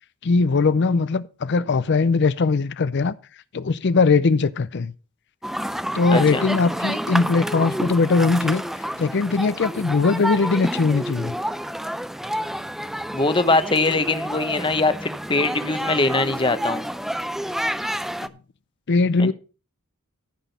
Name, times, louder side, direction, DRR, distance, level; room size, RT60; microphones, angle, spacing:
voice 1, 0.2-3.1 3.5-4.9 5.9-11.3 18.2-18.3 18.9-19.3, left 4 dB, 50° left, 0.5 m, -20 dB
sound 1, 5.4-18.3, equal, ahead, 0.4 m, -29 dB
voice 2, 6.1-6.5 13.1-16.9 19.2-19.3, left 3 dB, 20° left, 0.9 m, -22 dB
14.5 x 6.2 x 5.2 m
head